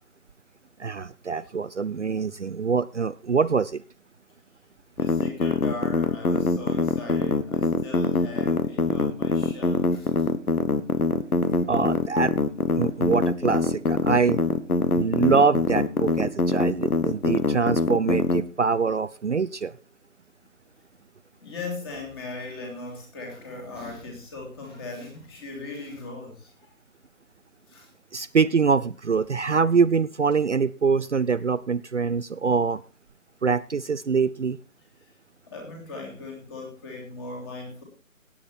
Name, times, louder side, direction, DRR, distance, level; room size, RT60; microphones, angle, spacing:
voice 1, 0.8-3.8 11.7-12.3 12.7-14.4 14.9-19.7 28.1-32.8 33.4-34.6, right 5 dB, 55° right, 13 dB, 0.6 m, -24 dB
sound 1, 5.0-18.4, left 3 dB, 90° left, 1.5 m, -23 dB
voice 2, 5.0-10.1 11.4-11.7 21.4-26.7 27.7-27.9 35.0-35.1 35.5-37.8, left 3 dB, 15° left, 1 dB, 3.2 m, -38 dB
16.0 x 8.8 x 4.2 m, 0.34 s
figure-of-eight pair, 160°, 43 cm